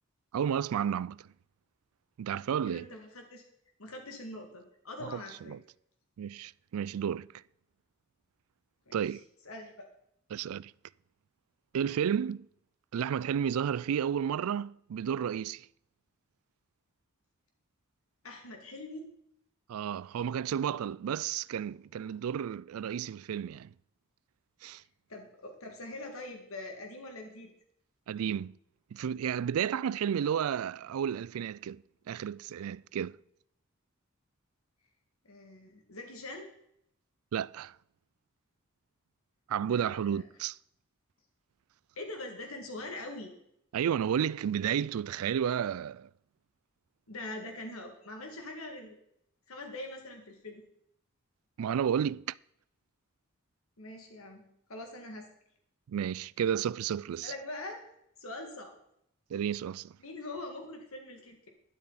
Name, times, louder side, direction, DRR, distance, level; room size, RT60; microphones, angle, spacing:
voice 1, 0.3-1.2 2.2-2.8 5.0-5.1 5.5-5.6 6.2-7.3 8.9-9.2 10.3-10.7 11.7-12.5 12.9-15.7 19.7-23.7 24.6-24.8 28.1-28.6 28.9-31.8 32.1-33.2 37.3-37.8 39.5-40.6 43.7-46.1 51.6-52.3 55.9-57.3 59.3-59.9, right 8 dB, 85° right, 0.3 m, -32 dB
voice 2, 2.6-3.4 3.8-5.6 8.9-9.0 9.5-9.9 18.2-19.1 25.1-27.5 35.2-36.5 39.7-40.3 42.0-43.3 47.1-49.0 49.5-50.6 53.8-55.3 57.2-57.8 58.2-58.8 60.0-61.5, left 2 dB, 80° left, 2.2 m, -43 dB
12.0 x 12.0 x 4.1 m
head